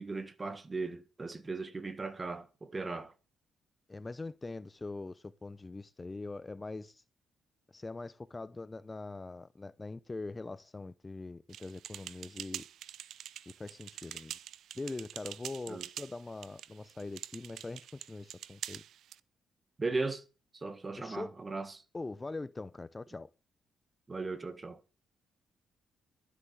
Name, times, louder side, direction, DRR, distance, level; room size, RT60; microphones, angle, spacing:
voice 1, 0.0-3.1 15.7-15.8 19.8-20.2 20.5-21.7 24.1-24.8, right 3 dB, 25° right, 1.6 m, -37 dB
voice 2, 3.9-7.0 7.7-12.6 13.6-14.4 14.7-18.8 21.0-21.3 21.9-23.3, left 3 dB, 20° left, 0.6 m, -42 dB
sound 1, 11.5-19.2, right 11 dB, 75° right, 0.6 m, -46 dB
12.5 x 8.2 x 6.9 m
cardioid pair, 90°, 0 cm